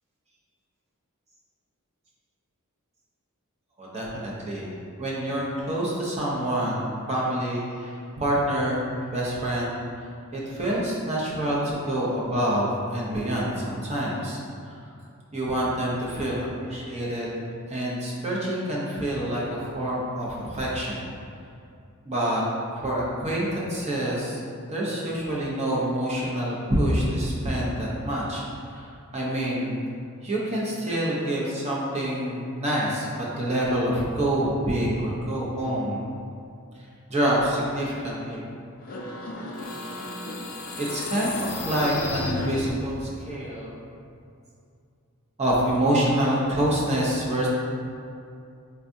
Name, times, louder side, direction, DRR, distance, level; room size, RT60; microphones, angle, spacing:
voice 1, 3.8-4.7 5.0-8.8 9.1-9.7 10.3-14.4 14.6-14.7 15.3-17.3 17.7-21.1 22.0-22.4 22.8-24.4 24.7-28.4 28.7-29.7 30.2-36.0 37.1-38.4 40.8-43.7 45.4-47.5, right 1 dB, 30° right, -5 dB, 0.6 m, -27 dB
sound 1, 38.8-43.1, left 3 dB, 40° left, 0.4 m, -34 dB
4.4 x 2.3 x 2.6 m, 2.5 s
head